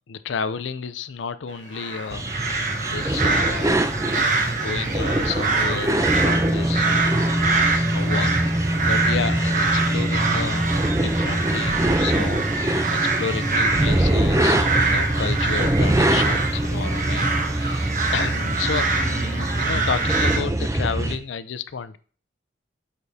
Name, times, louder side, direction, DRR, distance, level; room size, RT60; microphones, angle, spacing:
voice 1, 0.1-2.6 2.9-3.7 4.0-10.7 11.0-22.0, left 6 dB, 85° left, 13 dB, 0.5 m, -31 dB
sound 1, 1.7-20.4, right 3 dB, 40° right, 1.0 m, -25 dB
sound 2, 2.1-21.2, right 1 dB, 15° right, 0.5 m, -23 dB
8.1 x 6.8 x 2.7 m, 0.41 s
head